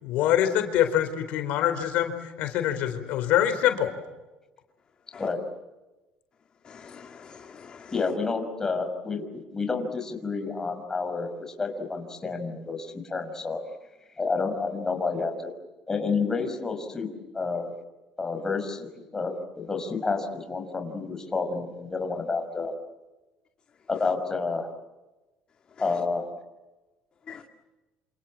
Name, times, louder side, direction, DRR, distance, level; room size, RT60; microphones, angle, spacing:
voice 1, 0.0-2.1 2.4-3.9, left 11 dB, 75° left, 4.5 m, -24 dB
voice 2, 6.6-7.9 27.3-27.4, left 6 dB, 35° left, 2.4 m, -45 dB
voice 3, 7.9-13.6 14.2-15.5 15.9-17.7 18.2-22.7 23.9-24.7 25.8-26.3, left 4 dB, 20° left, 5.6 m, -30 dB
28.5 x 28.0 x 7.6 m
cardioid pair, 120°, 3 cm